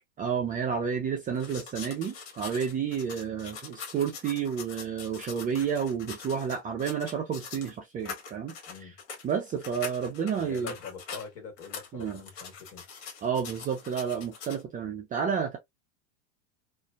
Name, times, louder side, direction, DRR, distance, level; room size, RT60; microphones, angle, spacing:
voice 1, 0.2-8.5 9.2-10.7 11.9-12.2 13.2-15.6, right 7 dB, 20° right, 0.5 m, -30 dB
sound 1, 1.4-7.7 8.0-11.3 11.6-14.6, left 5 dB, 65° left, 1.1 m, -43 dB
voice 2, 10.4-12.8, left 5 dB, 40° left, 1.5 m, -43 dB
2.6 x 2.2 x 2.4 m
hypercardioid pair, 100°, 37 cm